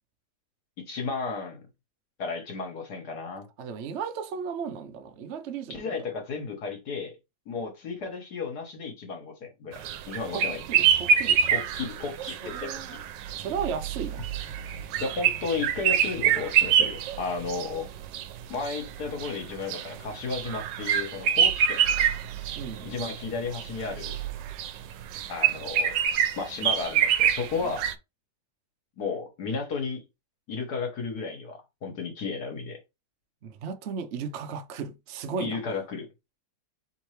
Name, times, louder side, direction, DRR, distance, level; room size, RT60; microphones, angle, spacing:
voice 1, 0.9-1.6 2.2-3.4 5.7-7.2 7.5-10.6 11.5-13.0 15.0-17.9 18.5-22.0 22.8-24.2 25.3-26.0 26.3-27.8 29.0-30.0 30.5-32.8 35.4-36.1, left 4 dB, 65° left, 1.8 m, -33 dB
voice 2, 3.6-6.0 10.3-11.5 12.4-13.0 13.4-14.3 22.6-22.9 27.6-27.7 33.4-35.6, right 6 dB, 60° right, 0.7 m, -35 dB
sound 1, 9.7-27.9, right 8 dB, 90° right, 1.3 m, -26 dB
4.4 x 3.6 x 3.2 m
omnidirectional pair, 1.9 m